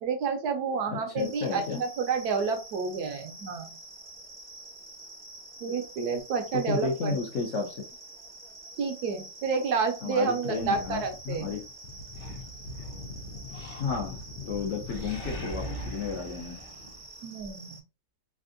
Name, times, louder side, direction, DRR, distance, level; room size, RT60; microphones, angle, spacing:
voice 1, 0.0-3.7 5.6-7.2 8.8-11.5 17.2-17.8, right 5 dB, 70° right, 5 dB, 1.2 m, -30 dB
voice 2, 0.9-1.8 6.5-7.8 10.0-11.7 13.8-14.1 14.5-16.6, left 4 dB, 65° left, 1 dB, 0.8 m, -32 dB
sound 1, 1.2-17.8, right 2 dB, 25° right, 0.6 m, -47 dB
sound 2, 10.5-16.5, left 2 dB, 90° left, 1.2 m, -42 dB
Animal, 12.1-13.0 13.5-14.3 14.5-17.5, equal, 35° left, 0.5 m, -42 dB
3.5 x 2.5 x 2.5 m, 0.30 s
omnidirectional pair, 1.8 m